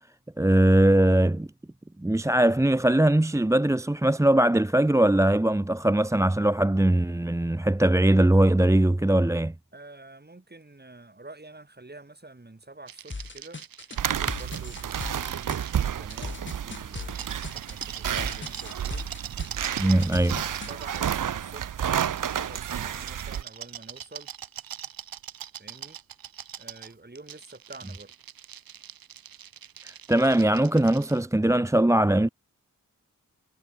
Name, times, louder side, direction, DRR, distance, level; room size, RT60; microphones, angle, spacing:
voice 1, 0.4-1.5 2.0-9.5 19.8-20.3 29.8-32.3, right 1 dB, 10° right, 0.7 m, -21 dB
voice 2, 9.7-13.6 13.9-19.1 19.7-24.3 25.6-26.0 26.6-28.1, right 2 dB, 30° right, 5.5 m, -48 dB
sound 1, 12.9-16.3 16.7-21.2 22.0-31.2, right 10 dB, 85° right, 1.1 m, -43 dB
sound 2, 13.1-20.7, left 3 dB, 35° left, 2.0 m, -39 dB
sound 3, 14.0-23.4, right 9 dB, 65° right, 0.8 m, -31 dB
cardioid pair, 40°, 34 cm